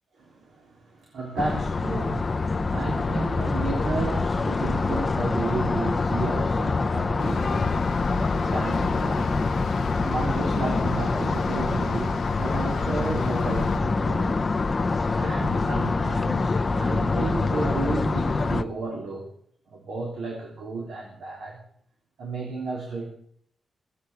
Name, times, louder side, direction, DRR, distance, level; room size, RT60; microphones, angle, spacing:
voice 1, 0.2-7.8 8.2-9.4 9.8-14.4 15.1-19.3 19.7-21.6 22.2-23.1, right 3 dB, 80° right, -1 dB, 3.2 m, -33 dB
sound 1, 1.4-18.6, left 3 dB, 25° left, 0.6 m, -25 dB
sound 2, 7.2-13.8, left 6 dB, 90° left, 0.9 m, -36 dB
17.5 x 8.2 x 8.1 m, 0.66 s
wide cardioid pair, 180°, 0 cm